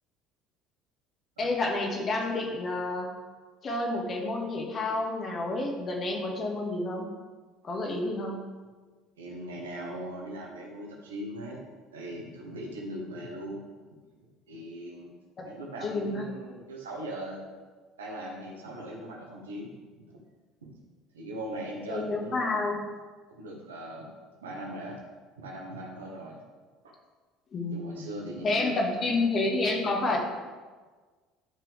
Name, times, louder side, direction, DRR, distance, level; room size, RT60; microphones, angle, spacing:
voice 1, 1.4-3.1 3.6-7.1 7.6-8.4 15.4-15.5 15.8-16.2 21.9-22.7 27.5-28.0 28.4-30.2, left 2 dB, 40° left, 0 dB, 2.2 m, -29 dB
voice 2, 9.2-11.6 11.9-13.6 14.5-15.1 15.4-17.4 18.0-20.2 20.6-20.7 21.1-22.6 23.3-24.1 24.4-25.0 25.4-26.4 26.8-27.0 27.7-29.1, right 1 dB, 85° right, -1 dB, 1.6 m, -40 dB
12.0 x 6.0 x 3.5 m, 1.4 s
hypercardioid pair, 65°, 0 cm